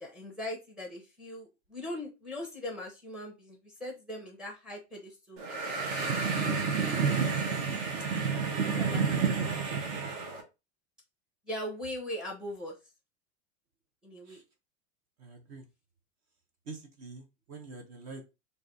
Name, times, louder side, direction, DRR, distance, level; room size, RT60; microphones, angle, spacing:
voice 1, 0.0-6.4 8.7-9.0 11.5-12.8 14.0-14.4, left 1 dB, ahead, 0 dB, 0.7 m, -40 dB
sound 1, 5.4-10.4, right 5 dB, 50° right, 1.1 m, -30 dB
voice 2, 15.2-15.7 16.7-18.2, right 3 dB, 20° right, 5 dB, 0.3 m, -46 dB
3.3 x 2.6 x 3.8 m, 0.26 s
supercardioid pair, 175°, 37 cm